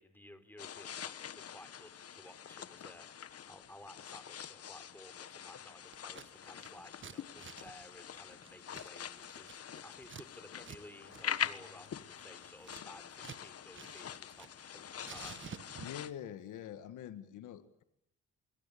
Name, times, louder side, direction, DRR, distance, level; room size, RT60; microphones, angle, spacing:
voice 1, 0.0-15.4, left 1 dB, 5° left, 10 dB, 3.9 m, -56 dB
sound 1, 0.6-16.1, left 9 dB, 50° left, 1.3 m, -44 dB
Scissors, 5.9-6.3 6.5-10.3 10.6-10.8 11.1-11.2 11.6-13.4 13.7-14.7 15.0-16.1, right 7 dB, 40° right, 1.4 m, -51 dB
voice 2, 15.8-17.8, left 10 dB, 85° left, 11 dB, 1.9 m, -45 dB
25.5 x 23.0 x 8.6 m, 0.76 s
cardioid pair, 90°, 30 cm